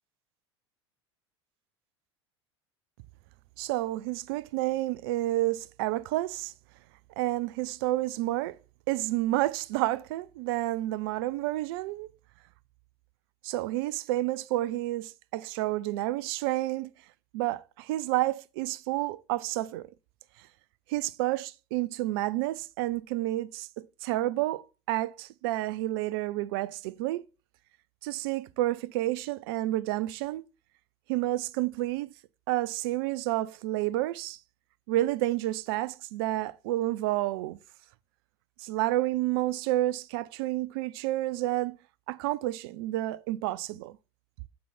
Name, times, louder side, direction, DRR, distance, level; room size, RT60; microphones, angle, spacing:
voice 1, 3.6-6.5 7.2-8.6 8.9-12.1 13.4-16.9 17.3-19.9 20.9-27.3 28.0-30.4 31.1-32.1 32.5-34.4 34.9-37.6 38.6-41.8 42.1-44.0, right 16 dB, 55° right, 0.5 m, -30 dB
7.4 x 4.0 x 4.3 m
figure-of-eight pair, 80°, 15 cm